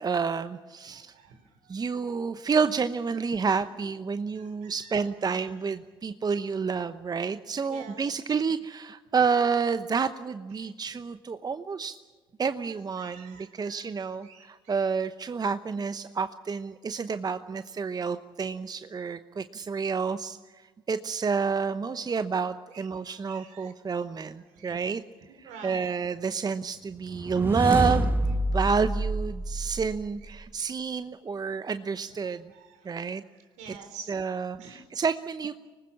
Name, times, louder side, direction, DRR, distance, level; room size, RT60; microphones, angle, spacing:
voice 1, 0.0-1.1 1.7-12.0 12.4-25.0 25.4-28.1 28.5-32.5 32.8-33.2 33.7-33.8 34.1-35.6, right 5 dB, 30° right, 11 dB, 0.9 m, -29 dB
voice 2, 0.9-1.7 4.3-5.6 7.6-8.0 10.6-10.7 13.0-14.0 14.2-14.8 22.7-23.7 24.5-24.8 25.3-25.9 30.6-30.7 32.5-32.9 33.6-34.1 34.6-34.8, right 5 dB, 70° right, 6 dB, 4.2 m, -49 dB
sound 1, 27.1-30.4, right 1 dB, 15° right, 1.5 m, -28 dB
25.0 x 20.0 x 7.2 m, 1.4 s
hypercardioid pair, 55°, 13 cm